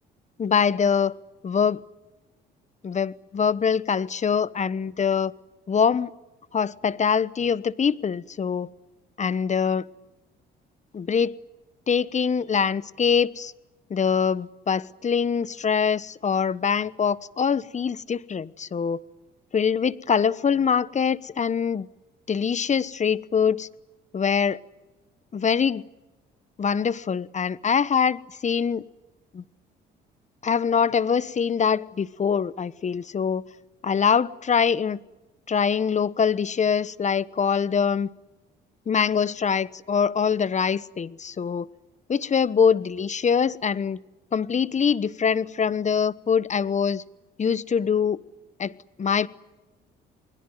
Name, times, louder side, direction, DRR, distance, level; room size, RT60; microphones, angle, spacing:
voice 1, 0.4-1.2 1.4-1.8 2.8-5.3 5.7-6.1 6.5-8.7 9.2-9.9 10.9-11.3 11.9-13.5 13.9-19.0 19.5-21.9 22.3-23.7 24.1-24.6 25.3-25.8 26.6-28.8 29.3-29.4 30.4-33.4 33.8-35.0 35.5-38.1 38.9-41.7 42.1-44.0 44.3-47.0 47.4-48.2 48.6-48.7 49.0-49.3, left 6 dB, 35° left, 1.1 m, -23 dB
29.0 x 21.0 x 9.3 m
supercardioid pair, 75°, 20 cm